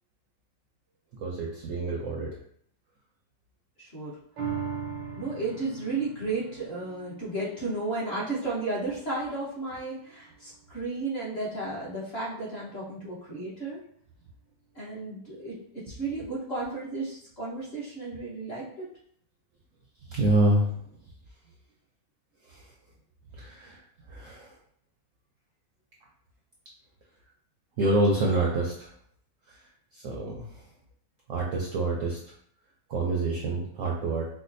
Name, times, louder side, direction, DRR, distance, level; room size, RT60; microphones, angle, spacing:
voice 1, 1.2-2.4 20.1-20.7 22.5-22.6 23.4-23.8 24.1-24.5 27.8-28.9 29.9-30.6 31.3-32.2 32.9-34.3, right 2 dB, 70° right, -2 dB, 0.7 m, -27 dB
voice 2, 3.8-4.1 5.2-13.8 14.7-18.9, right 3 dB, 40° left, -7 dB, 1.1 m, -33 dB
sound 1, 4.4-11.0 11.5-11.6, right 6 dB, 90° right, 1.3 m, -41 dB
4.8 x 2.2 x 2.6 m, 0.64 s
omnidirectional pair, 1.9 m